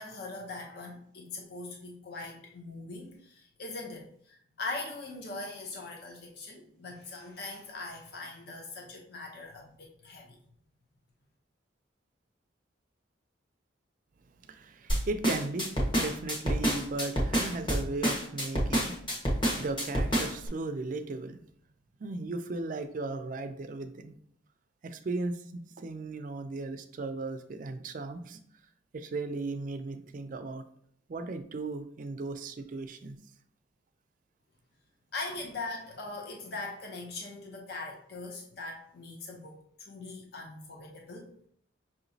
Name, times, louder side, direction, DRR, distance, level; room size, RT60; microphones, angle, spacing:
voice 1, 0.0-10.4 35.1-39.5 39.8-41.3, left 3 dB, 55° left, 0 dB, 0.6 m, -41 dB
voice 2, 14.5-19.0 19.2-21.4 22.0-24.2 24.8-28.4 28.9-30.6 31.1-33.2, right 3 dB, 45° right, 9 dB, 0.4 m, -36 dB
sound 1, 14.9-20.5, equal, 25° left, 1.1 m, -28 dB
5.6 x 2.9 x 2.7 m, 0.64 s
head